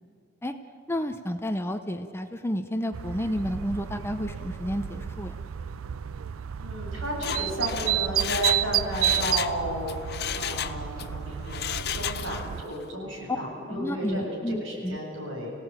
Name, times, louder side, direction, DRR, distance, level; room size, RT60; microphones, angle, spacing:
voice 1, 0.9-5.3 13.7-15.0, equal, 10° left, 8 dB, 0.8 m, -31 dB
sound 1, 2.9-12.6, right 11 dB, 85° right, 0.4 m, -31 dB
voice 2, 6.6-9.9 10.3-15.5, equal, 65° right, -3 dB, 7.9 m, -33 dB
Mechanisms, 7.1-9.6 9.9-11.1 11.5-12.5 12.8-12.9, left 9 dB, 55° left, 0.8 m, -33 dB
27.0 x 17.0 x 9.0 m, 2.6 s
head